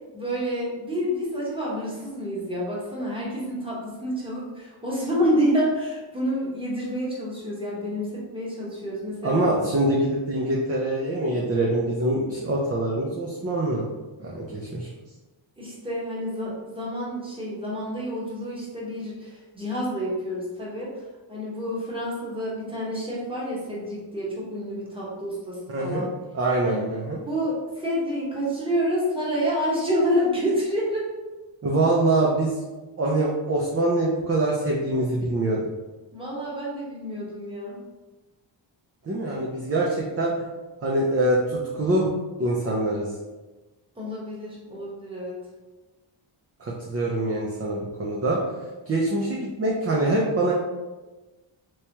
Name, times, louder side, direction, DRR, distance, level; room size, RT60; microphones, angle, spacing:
voice 1, 0.1-9.6 15.6-20.9 21.3-26.1 26.6-26.9 27.3-31.1 36.1-37.8 44.0-45.4, equal, 10° right, -6 dB, 1.1 m, -28 dB
voice 2, 9.2-13.9 14.2-14.9 25.7-26.1 26.3-27.2 31.6-32.6 33.0-35.6 39.0-40.5 40.8-42.1 42.4-43.1 46.6-48.4 48.9-50.5, right 2 dB, 30° right, -3 dB, 0.5 m, -24 dB
3.3 x 3.0 x 2.8 m, 1.2 s
wide cardioid pair, 125°, 48 cm